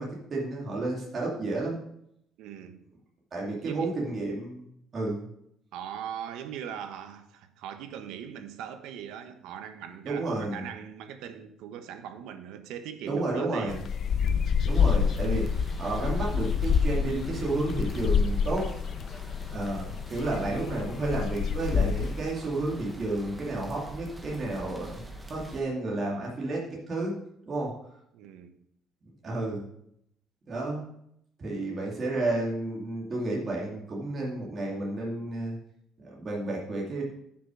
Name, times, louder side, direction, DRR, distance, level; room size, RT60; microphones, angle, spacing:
voice 1, 0.0-1.8 3.3-4.6 4.9-5.3 10.0-10.7 13.1-13.8 14.6-18.6 19.5-25.0 25.3-27.1 27.5-27.7 29.2-29.6 30.5-30.8 31.4-35.6 36.0-37.0, right 2 dB, 25° right, 2.5 m, -31 dB
voice 2, 2.4-2.8 3.4-3.9 5.7-13.8 14.2-14.6 28.1-28.6, right 9 dB, 80° right, 1.2 m, -40 dB
sound 1, 13.7-22.2, left 6 dB, 35° left, 0.6 m, -27 dB
sound 2, 14.7-25.6, right 1 dB, 5° right, 1.0 m, -44 dB
10.0 x 6.1 x 6.3 m
cardioid pair, 180°, 0 cm